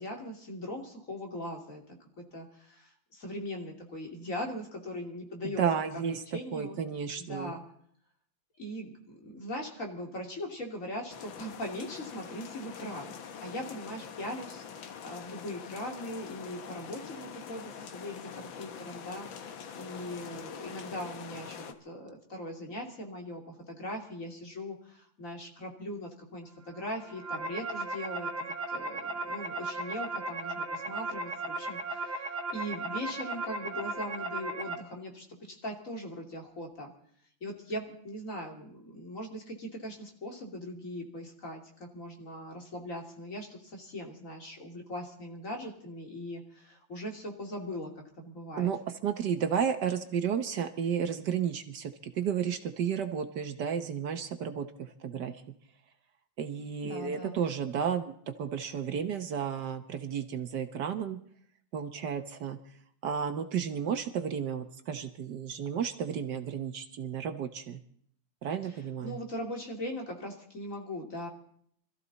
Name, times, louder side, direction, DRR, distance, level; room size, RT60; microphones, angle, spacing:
voice 1, 0.0-5.9 6.3-6.8 7.2-7.6 8.6-14.6 15.0-36.9 37.4-47.9 48.2-48.7 56.8-57.4 68.6-71.3, left 1 dB, 40° left, 1 dB, 3.1 m, -40 dB
voice 2, 5.4-7.5 48.6-48.8 49.0-55.4 56.4-61.2 61.7-62.6 63.0-67.8 68.4-69.2, right 7 dB, 65° right, 8 dB, 1.5 m, -32 dB
sound 1, 11.1-21.7, left 7 dB, 85° left, 1.9 m, -44 dB
sound 2, 26.9-34.7, right 2 dB, 35° right, 2.0 m, -36 dB
25.5 x 14.0 x 4.1 m, 0.63 s
omnidirectional pair, 2.1 m